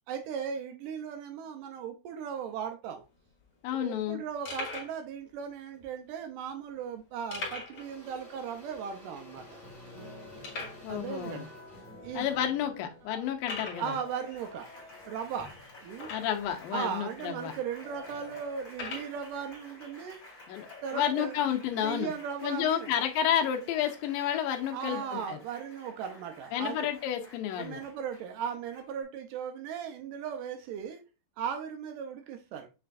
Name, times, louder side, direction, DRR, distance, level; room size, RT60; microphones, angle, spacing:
voice 1, 0.1-3.0 3.7-9.6 10.9-11.5 12.0-12.3 13.1-13.3 13.7-14.7 15.1-15.5 15.8-16.1 16.7-20.2 20.8-21.4 21.8-22.9 24.7-26.9 27.6-31.0 31.4-32.7, right 7 dB, 80° right, 5 dB, 2.0 m, -37 dB
sound 1, 3.0-3.1 3.3-3.4 3.9-4.0 4.5-5.0 5.7-5.8 7.3-7.9 8.2-8.3 8.7-8.8 9.4-9.5 10.4-10.9 11.7-11.8 12.3-12.4 13.4-13.9 15.9-16.5 17.3-17.4 18.7-19.1, left 3 dB, 50° left, 2.4 m, -39 dB
voice 2, 3.6-4.2 10.8-11.5 12.1-14.0 16.1-17.5 20.5-20.7 20.9-22.1 22.4-25.4 26.5-27.8, left 10 dB, 85° left, 4 dB, 2.4 m, -30 dB
Engine / Drill, 6.8-7.0 7.3-13.5, left 2 dB, 30° right, 0.4 m, -53 dB
Applause, 9.4-29.0, left 2 dB, 25° left, 2.4 m, -51 dB
6.5 x 3.3 x 2.4 m, 0.29 s
omnidirectional pair, 4.1 m